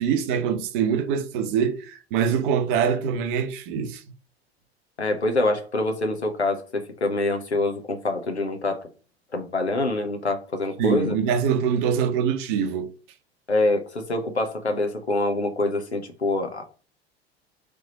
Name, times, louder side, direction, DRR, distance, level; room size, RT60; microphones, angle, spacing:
voice 1, 0.0-4.0 10.8-12.9, right 7 dB, 50° right, 0.8 m, -24 dB
voice 2, 5.0-8.9 9.3-11.2 13.5-16.6, left 2 dB, 85° left, 0.8 m, -25 dB
3.5 x 3.3 x 4.1 m
figure-of-eight pair, 75°, 32 cm